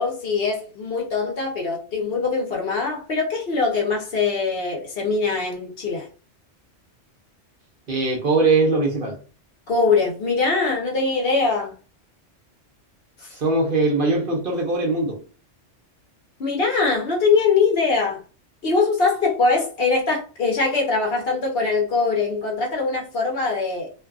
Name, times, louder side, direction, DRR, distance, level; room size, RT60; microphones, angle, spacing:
voice 1, 0.0-6.1 9.7-11.7 13.2-13.3 16.4-18.2 18.6-23.9, left 4 dB, 60° left, 1.0 m, -22 dB
voice 2, 7.9-9.2 13.3-15.2, right 3 dB, 55° right, 0.9 m, -21 dB
2.6 x 2.4 x 2.3 m
omnidirectional pair, 1.2 m